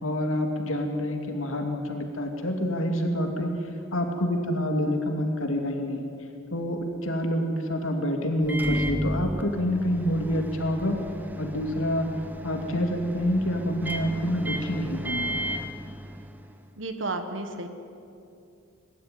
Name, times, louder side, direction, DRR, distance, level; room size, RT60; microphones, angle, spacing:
voice 1, 0.0-3.5 3.9-6.1 6.5-11.0 11.4-12.1 12.4-15.4, equal, 90° left, 3 dB, 2.5 m, -27 dB
Microwave oven, 8.4-16.6, right 1 dB, 10° right, 0.9 m, -34 dB
voice 2, 16.8-17.7, right 2 dB, 70° right, 7 dB, 1.6 m, -32 dB
22.0 x 12.5 x 9.6 m, 2.6 s
head